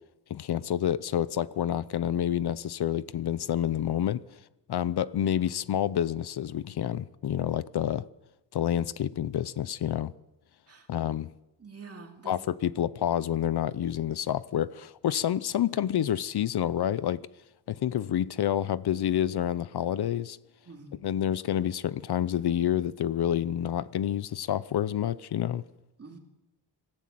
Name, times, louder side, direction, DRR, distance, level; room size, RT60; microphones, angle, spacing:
voice 1, 0.3-4.2 4.7-8.0 8.5-10.1 10.9-11.3 12.3-17.2 17.7-20.4 21.0-25.6, left 10 dB, 65° left, 0.7 m, -28 dB
voice 2, 11.6-12.4 20.6-21.0 26.0-26.2, right 4 dB, 35° right, 2.7 m, -46 dB
26.0 x 15.0 x 7.6 m
wide cardioid pair, 170°, 41 cm